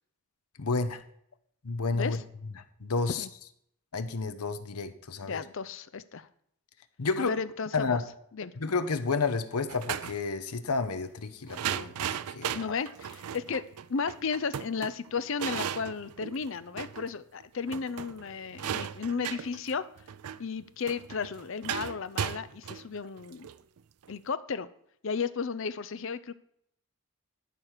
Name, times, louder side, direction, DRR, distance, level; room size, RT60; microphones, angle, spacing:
voice 1, 0.6-1.0 1.6-2.2 2.8-3.2 3.9-5.4 7.0-7.3 7.7-8.0 8.6-12.6, left 4 dB, 90° left, 11 dB, 0.8 m, -31 dB
voice 2, 5.2-6.3 7.2-8.0 8.3-8.5 12.5-13.6 13.9-19.8 20.4-23.5 24.1-24.7 25.0-26.4, left 5 dB, 60° left, 15 dB, 0.5 m, -34 dB
sound 1, 9.7-10.2 11.5-17.1 17.4-17.5 17.7-24.1, right 9 dB, 85° right, 0.4 m, -36 dB
12.5 x 4.7 x 6.6 m, 0.70 s
head